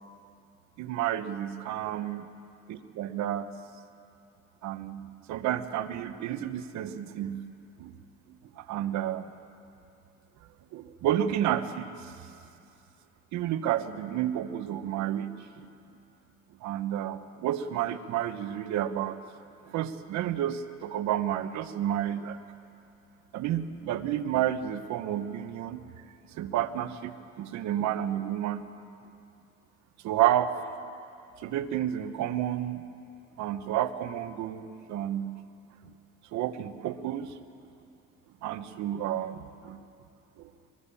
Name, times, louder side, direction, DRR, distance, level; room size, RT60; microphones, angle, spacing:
voice 1, 0.8-2.2 2.7-3.5 4.6-7.4 7.8-7.9 8.6-9.3 10.7-12.1 13.3-15.3 15.6-15.7 16.6-19.2 19.6-22.4 23.3-25.8 26.4-28.6 30.0-30.5 31.4-32.8 33.4-35.3 36.3-37.3 38.4-39.8 40.4-40.5, right 11 dB, 70° right, 10 dB, 1.2 m, -30 dB
22.5 x 22.0 x 7.2 m, 2.6 s
cardioid pair, 135°, 29 cm